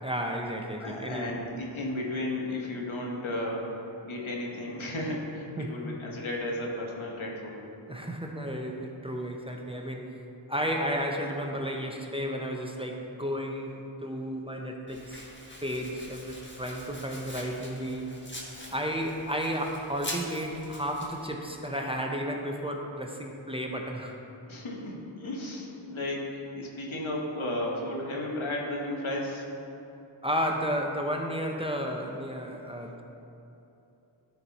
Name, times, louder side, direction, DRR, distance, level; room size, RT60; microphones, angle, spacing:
voice 1, 0.0-1.3 5.6-5.8 7.9-10.1 10.5-15.3 15.6-18.1 18.7-24.2 30.2-33.0, equal, 10° right, 1 dB, 0.7 m, -33 dB
voice 2, 0.8-3.7 4.0-7.7 24.5-29.5, left 1 dB, 80° left, -2 dB, 1.4 m, -34 dB
Domestic sounds home sounds, 14.9-21.3, left 1 dB, 25° left, 1.3 m, -44 dB
12.5 x 4.6 x 4.1 m, 2.8 s
wide cardioid pair, 55°, 47 cm